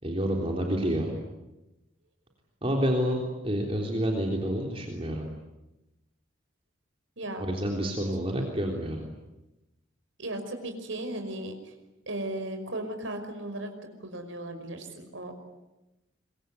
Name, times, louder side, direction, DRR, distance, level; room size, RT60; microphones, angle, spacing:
voice 1, 0.0-1.1 2.6-5.2 7.4-9.0, equal, 30° right, 1 dB, 3.6 m, -28 dB
voice 2, 7.2-7.5 10.2-11.7 12.1-13.7 14.0-15.4, right 1 dB, 80° right, 6 dB, 5.6 m, -36 dB
25.5 x 23.5 x 9.5 m, 0.98 s
head